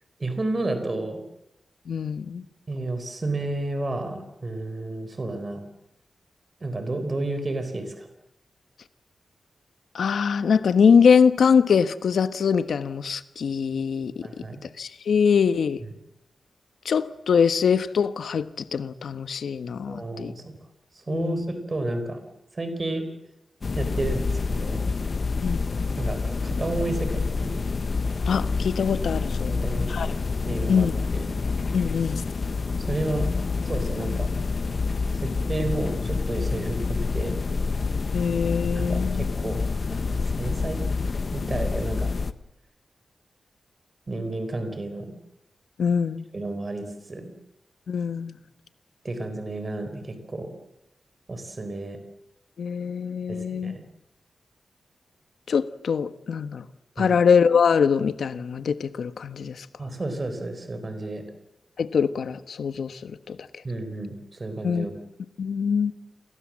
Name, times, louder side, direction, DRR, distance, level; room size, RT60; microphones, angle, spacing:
voice 1, 0.2-1.2 2.7-5.6 6.6-8.1 14.2-14.6 19.9-20.5 20.9-22.2 22.5-23.1 23.8-24.9 26.0-27.6 29.5-31.3 32.8-33.3 33.6-34.3 35.1-37.5 38.7-40.8 41.3-42.1 44.1-45.1 46.3-47.3 49.0-50.5 51.3-52.0 53.3-53.8 57.0-57.2 59.8-61.2 63.6-65.0, right 2 dB, 30° right, 8 dB, 4.2 m, -31 dB
voice 2, 1.9-2.4 9.9-14.1 14.6-15.8 16.8-20.3 21.1-21.5 25.4-25.6 28.3-29.5 29.9-30.1 30.7-30.9 31.7-32.2 38.1-39.3 45.8-46.2 47.9-48.4 52.6-53.7 55.5-56.6 57.0-59.6 61.8-63.4 64.6-64.9 65.4-65.9, left 6 dB, 85° left, 12 dB, 1.3 m, -23 dB
sound 1, 23.6-42.3, left 4 dB, 40° left, 1.1 m, -27 dB
29.5 x 22.0 x 7.6 m, 0.87 s
wide cardioid pair, 160°, 0 cm